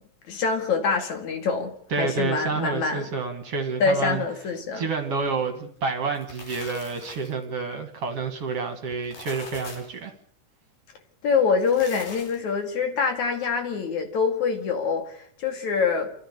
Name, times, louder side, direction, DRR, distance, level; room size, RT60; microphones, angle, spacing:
voice 1, 0.3-1.7 2.0-3.1 3.8-4.9 11.2-16.1, left 5 dB, 65° left, 5 dB, 3.5 m, -25 dB
voice 2, 1.9-4.2 4.8-10.1, right 4 dB, 55° right, 6 dB, 2.2 m, -29 dB
sound 1, 6.0-7.4 8.9-10.0 11.5-12.5, left 3 dB, 85° left, 5.2 m, -42 dB
28.5 x 14.0 x 6.7 m, 0.64 s
omnidirectional pair, 3.7 m